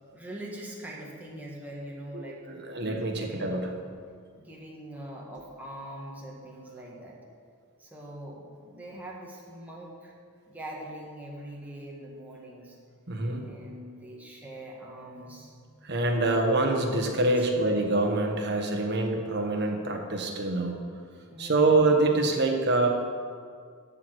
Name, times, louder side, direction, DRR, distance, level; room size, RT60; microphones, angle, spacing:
voice 1, 0.1-2.4 3.2-3.5 4.4-7.2 7.8-10.1 10.5-12.7 13.4-15.6 17.3-17.5 21.3-21.7, right 1 dB, 5° right, -4 dB, 1.7 m, -42 dB
voice 2, 2.1-3.7 13.1-13.4 15.8-20.8 21.4-22.9, right 2 dB, 50° right, 2 dB, 1.3 m, -25 dB
12.0 x 4.7 x 8.0 m, 2.1 s
head